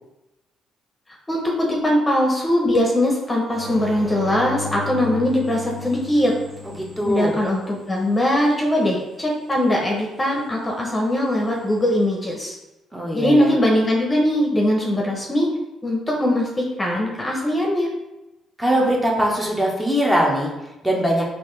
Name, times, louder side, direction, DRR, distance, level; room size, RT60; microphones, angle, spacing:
voice 1, 1.3-6.3 7.0-12.5 13.1-15.5 15.8-17.9, left 1 dB, 25° left, -1 dB, 0.9 m, -21 dB
sound 1, 3.5-8.1 11.4-12.0, left 4 dB, 35° right, 1.0 m, -35 dB
voice 2, 7.0-7.4 12.9-13.5 18.6-20.5 20.8-21.2, equal, 10° right, -2 dB, 1.1 m, -21 dB
3.9 x 2.6 x 3.3 m, 0.98 s
hypercardioid pair, 50°, 0 cm